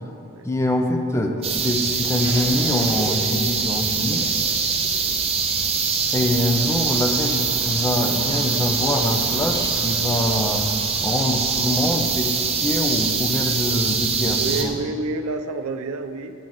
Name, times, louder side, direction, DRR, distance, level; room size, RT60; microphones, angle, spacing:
voice 1, 0.4-4.3 6.1-10.7 11.0-12.3 12.6-14.8, left 1 dB, 15° left, 3 dB, 0.5 m, -24 dB
sound 1, 1.4-14.6, right 5 dB, 30° right, 0.6 m, -23 dB
voice 2, 4.8-5.2 14.2-16.3, right 3 dB, 75° right, 7 dB, 0.4 m, -29 dB
8.7 x 3.9 x 6.1 m, 2.6 s
head